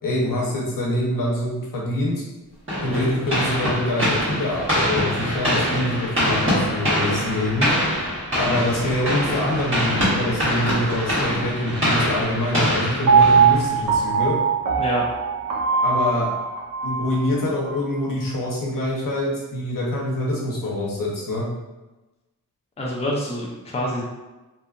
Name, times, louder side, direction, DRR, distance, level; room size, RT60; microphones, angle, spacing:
voice 1, 0.0-2.2 2.8-7.7 8.3-14.3 15.8-16.3 16.8-21.5, left 1 dB, 70° left, -4 dB, 0.8 m, -25 dB
sound 1, 2.7-14.0, equal, 35° right, 1.3 m, -24 dB
Piano, 13.1-17.2 17.6-17.7, right 6 dB, 65° right, 0.5 m, -20 dB
voice 2, 22.8-24.0, left 1 dB, 20° left, -3 dB, 0.4 m, -26 dB
2.7 x 2.4 x 2.4 m, 1.1 s
wide cardioid pair, 115°, 34 cm